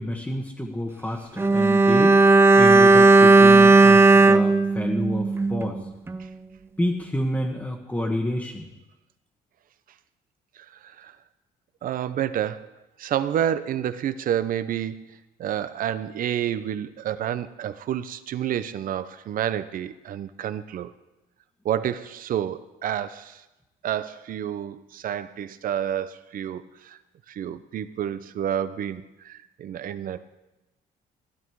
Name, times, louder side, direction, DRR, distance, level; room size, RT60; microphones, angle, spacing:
voice 1, 0.0-2.2 2.5-5.8 6.8-8.7, left 1 dB, 10° left, -1 dB, 1.5 m, -29 dB
Bowed string instrument, 1.4-5.8 6.1-6.2, right 3 dB, 15° right, 0.6 m, -15 dB
voice 2, 11.8-12.7 13.0-15.0 15.4-20.9 21.6-23.4 23.8-27.0 27.3-30.2, right 10 dB, 55° right, 13 dB, 0.8 m, -29 dB
15.5 x 11.0 x 4.8 m, 0.99 s
cardioid pair, 110°, 17 cm